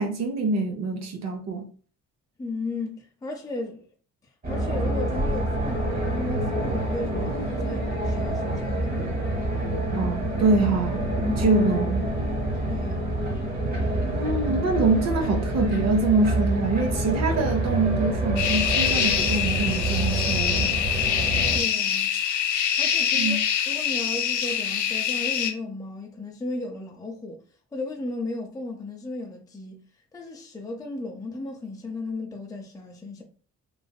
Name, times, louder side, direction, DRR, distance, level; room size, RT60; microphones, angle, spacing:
voice 1, 0.0-1.7 9.9-11.1 11.4-12.0 14.1-20.7 23.1-23.4, right 3 dB, 60° right, 0.6 m, -25 dB
voice 2, 2.4-3.9 4.5-9.2 12.7-13.1 21.5-22.1 22.8-23.4 23.7-27.4 27.7-29.8 30.1-33.2, left 2 dB, 10° left, 0.5 m, -35 dB
sound 1, 4.4-21.6, right 1 dB, 30° right, 1.0 m, -27 dB
sound 2, 18.4-25.5, left 9 dB, 75° left, 0.6 m, -25 dB
3.2 x 2.5 x 2.2 m
cardioid pair, 90°, 30 cm